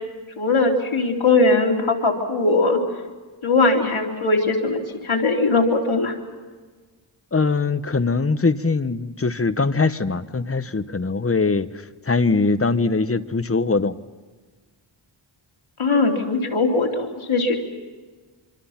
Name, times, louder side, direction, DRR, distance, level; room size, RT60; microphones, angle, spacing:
voice 1, 0.4-2.8 3.4-6.1 15.8-17.6, left 3 dB, 80° left, 1 dB, 3.5 m, -20 dB
voice 2, 7.3-11.7 12.0-14.0, left 4 dB, 30° left, 12 dB, 1.0 m, -21 dB
26.0 x 25.5 x 5.8 m, 1.4 s
wide cardioid pair, 75°, 48 cm